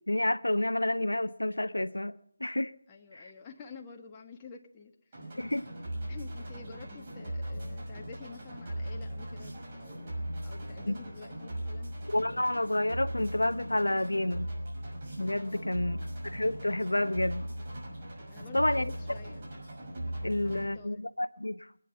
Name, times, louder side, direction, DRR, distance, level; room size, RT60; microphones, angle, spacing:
voice 1, 0.1-2.2 2.4-2.7 3.1-3.3 5.4-5.7 10.9-11.0 12.1-14.5 15.2-16.0 16.3-17.5 18.5-18.9 20.2-21.7, left 1 dB, 90° left, 0.7 m, -29 dB
voice 2, 2.9-5.4 6.1-12.0 15.4-16.1 18.3-19.5 20.2-21.0, left 5 dB, 20° left, 1.4 m, -50 dB
sound 1, 5.1-20.7, right 1 dB, 35° right, 6.1 m, -39 dB
25.5 x 9.7 x 5.8 m
figure-of-eight pair, 160°, 0 cm